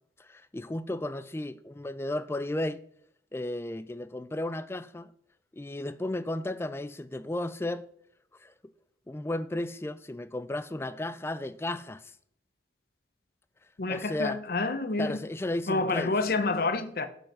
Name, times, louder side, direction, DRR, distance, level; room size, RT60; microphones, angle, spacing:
voice 1, 0.2-2.8 3.3-5.1 5.5-7.8 8.4-8.5 9.1-12.1 13.9-14.4 15.0-16.1, left 1 dB, 15° left, 0.3 m, -34 dB
voice 2, 13.8-15.2 15.7-17.1, left 3 dB, 55° left, 0.7 m, -28 dB
8.8 x 5.4 x 6.0 m
head